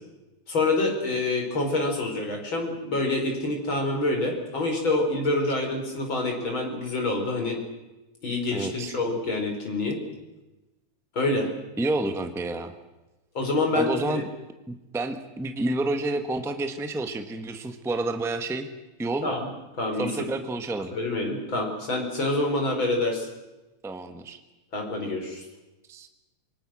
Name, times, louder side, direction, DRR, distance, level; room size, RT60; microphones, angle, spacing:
voice 1, 0.5-7.6 8.2-10.0 11.2-11.5 13.4-14.2 19.2-19.5 19.8-20.3 20.9-23.3 24.7-25.4, left 2 dB, 40° left, 1 dB, 5.4 m, -26 dB
voice 2, 8.5-8.9 11.8-12.7 13.7-14.2 14.7-18.7 19.0-19.3 20.0-20.9 23.8-24.4 25.9-26.1, right 2 dB, ahead, 7 dB, 0.8 m, -29 dB
26.5 x 24.5 x 6.4 m, 1.0 s
omnidirectional pair, 3.5 m